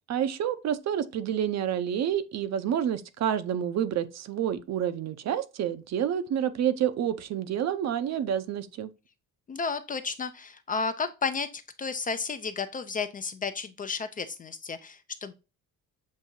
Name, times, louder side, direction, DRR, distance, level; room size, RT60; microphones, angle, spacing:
voice 1, 0.1-8.9, right 9 dB, 55° right, 0.6 m, -29 dB
voice 2, 9.5-15.3, left 5 dB, 25° left, 0.4 m, -32 dB
7.3 x 2.7 x 2.6 m
cardioid pair, 140°, 32 cm